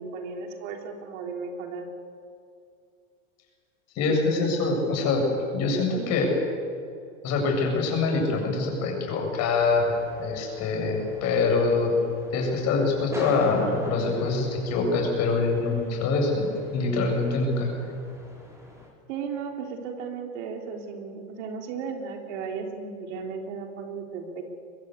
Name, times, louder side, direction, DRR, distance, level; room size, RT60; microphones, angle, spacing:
voice 1, 0.0-1.9 19.1-24.4, right 5 dB, 60° right, 3 dB, 3.9 m, -35 dB
voice 2, 3.9-5.2 5.5-6.3 7.2-11.9 12.3-17.7, left 3 dB, 40° left, 1 dB, 7.9 m, -25 dB
sound 1, 9.5-18.9, equal, 5° right, 5.2 m, -43 dB
23.0 x 21.5 x 8.4 m, 2.4 s
supercardioid pair, 145°, 41 cm